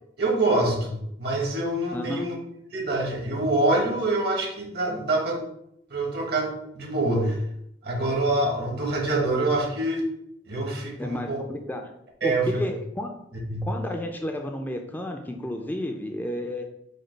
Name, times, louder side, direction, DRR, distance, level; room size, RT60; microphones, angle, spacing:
voice 1, 0.2-2.3 2.7-5.4 5.9-6.5 6.7-7.4 7.8-10.0 10.5-11.4 12.2-12.6 13.5-13.7, right 2 dB, 60° right, 0 dB, 1.2 m, -25 dB
voice 2, 1.9-2.3 11.0-11.8 12.2-13.1 13.6-16.6, left 1 dB, 10° left, 3 dB, 0.3 m, -31 dB
5.1 x 2.3 x 4.4 m, 0.77 s
head